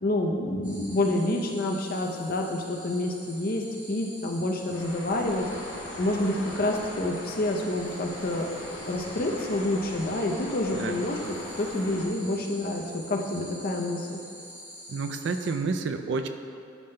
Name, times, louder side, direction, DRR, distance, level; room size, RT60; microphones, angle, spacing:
voice 1, 0.0-5.5 6.0-8.5 8.9-14.2, left 1 dB, 50° left, 2 dB, 0.6 m, -28 dB
sound 1, 0.6-15.5, equal, 10° right, 1.4 m, -46 dB
sound 2, 4.7-12.1, left 1 dB, 75° left, 1.2 m, -40 dB
voice 2, 10.7-11.0 14.9-16.3, right 4 dB, 60° right, 7 dB, 0.4 m, -29 dB
11.0 x 5.6 x 2.2 m, 2.5 s
head